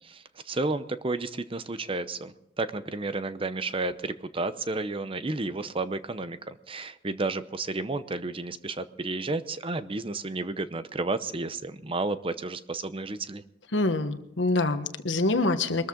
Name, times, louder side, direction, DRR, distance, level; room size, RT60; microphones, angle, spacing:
voice 1, 0.0-13.4, right 3 dB, 30° right, 12 dB, 0.8 m, -32 dB
voice 2, 13.7-15.9, left 2 dB, 80° left, 9 dB, 1.4 m, -26 dB
22.5 x 13.5 x 3.8 m, 0.80 s
head